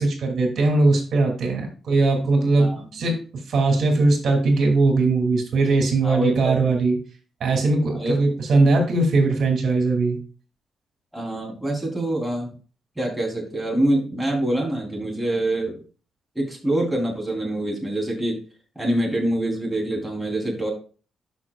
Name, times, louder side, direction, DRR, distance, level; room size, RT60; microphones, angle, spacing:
voice 1, 0.0-3.2 3.5-7.0 7.4-10.2, right 3 dB, 65° right, 2 dB, 2.5 m, -20 dB
voice 2, 6.0-6.7 7.9-8.2 11.1-12.5 13.0-15.8 16.4-18.4 18.8-20.7, right 1 dB, 5° right, -1 dB, 3.5 m, -25 dB
12.5 x 5.9 x 2.4 m, 0.37 s
cardioid pair, 105°, 0 cm